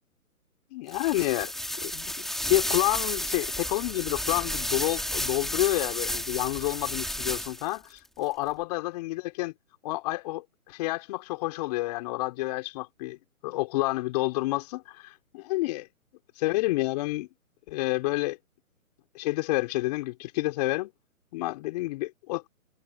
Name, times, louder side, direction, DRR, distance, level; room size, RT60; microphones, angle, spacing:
voice 1, 0.7-1.5 1.8-9.5 9.8-13.2 13.4-15.9 16.3-17.3 17.7-18.4 19.1-20.9 21.3-22.5, left 20 dB, 25° left, 4.5 m, -29 dB
sound 1, 0.9-7.8, left 1 dB, ahead, 2.7 m, -32 dB
hypercardioid pair, 155°, 43 cm